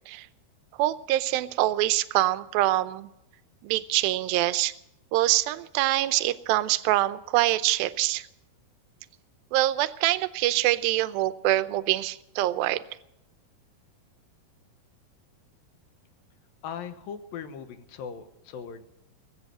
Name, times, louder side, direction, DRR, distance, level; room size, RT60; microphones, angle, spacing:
voice 1, 0.8-3.1 3.6-4.7 5.1-8.3 9.5-12.8, right 15 dB, 80° right, 14 dB, 2.2 m, -25 dB
voice 2, 16.6-18.9, left 7 dB, 70° left, 9 dB, 2.6 m, -39 dB
21.0 x 8.4 x 7.7 m, 0.85 s
omnidirectional pair, 4.7 m